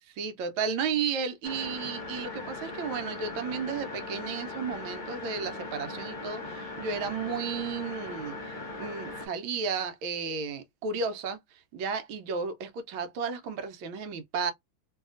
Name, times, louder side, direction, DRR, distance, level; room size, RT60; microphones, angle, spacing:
voice 1, 0.1-14.5, right 5 dB, 85° right, 1.5 m, -33 dB
sound 1, 1.4-9.3, left 2 dB, 40° left, 0.7 m, -39 dB
3.2 x 2.8 x 2.4 m
omnidirectional pair, 2.2 m